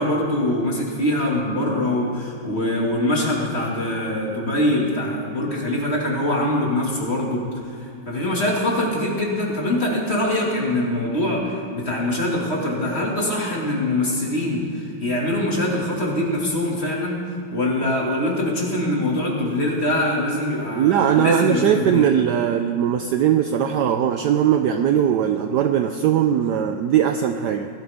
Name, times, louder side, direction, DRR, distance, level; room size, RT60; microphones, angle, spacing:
voice 1, 0.0-7.4 7.8-22.1, left 1 dB, 30° left, -3 dB, 2.4 m, -23 dB
voice 2, 20.7-27.7, right 9 dB, 75° right, 7 dB, 1.0 m, -20 dB
19.0 x 12.5 x 3.5 m, 2.5 s
omnidirectional pair, 2.2 m